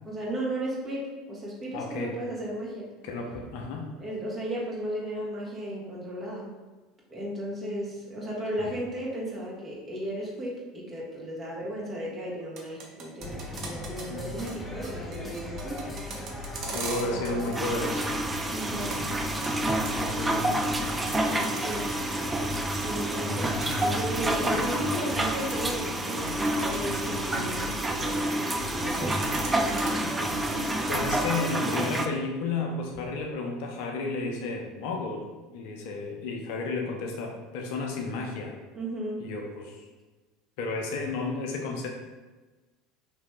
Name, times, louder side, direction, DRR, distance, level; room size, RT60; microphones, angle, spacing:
voice 1, 0.0-2.9 4.0-6.5 7.1-15.9 16.6-17.6 18.5-19.0 21.5-21.9 22.7-23.5 23.8-28.4 28.7-30.7 38.7-39.2, right 1 dB, 30° right, -5 dB, 1.4 m, -35 dB
voice 2, 1.7-2.1 3.0-3.9 8.6-8.8 13.5-13.7 14.1-14.5 16.7-18.2 20.0-20.8 23.3-24.0 24.5-24.7 30.9-35.2 35.5-38.6 39.2-39.9 40.6-41.9, left 3 dB, 60° left, 1 dB, 0.6 m, -33 dB
sound 1, 12.4-14.1 14.4-14.6 14.8-17.7 18.0-20.1 20.4-25.1 25.4-25.7 26.1-28.4 28.6-29.9, right 4 dB, 50° right, 0.7 m, -40 dB
sound 2, 13.2-31.3, left 1 dB, 10° left, 0.8 m, -39 dB
sound 3, 17.6-32.1, right 1 dB, 15° right, 0.4 m, -29 dB
3.5 x 2.9 x 3.2 m, 1.3 s
figure-of-eight pair, 70°, 0 cm